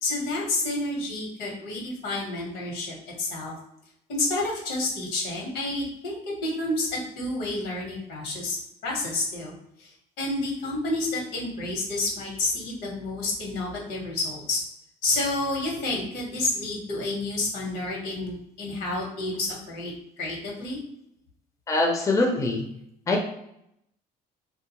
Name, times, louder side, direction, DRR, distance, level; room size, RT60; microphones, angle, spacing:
voice 1, 0.0-3.5 4.1-8.6 8.8-9.5 9.8-14.6 15.0-19.9 20.2-20.8, left 2 dB, 80° left, -2 dB, 1.1 m, -29 dB
voice 2, 21.7-22.7 23.1-23.2, left 2 dB, 20° left, 0 dB, 0.5 m, -23 dB
2.3 x 2.3 x 2.8 m, 0.77 s
cardioid pair, 110°, 17 cm